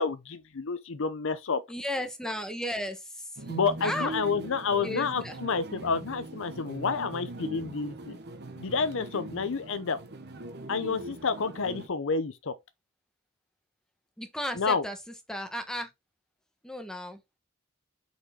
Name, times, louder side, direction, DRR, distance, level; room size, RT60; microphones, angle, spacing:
voice 1, 0.0-1.6 3.5-8.2 8.6-10.0 10.7-12.5 14.6-14.8, left 5 dB, 65° left, 0.7 m, -29 dB
voice 2, 1.7-3.3 3.8-4.1 4.8-5.4 14.2-15.0 15.3-15.9 16.6-17.2, left 1 dB, 5° left, 1.3 m, -34 dB
sound 1, 3.4-11.9, right 2 dB, 50° right, 1.1 m, -41 dB
6.5 x 4.9 x 3.7 m
head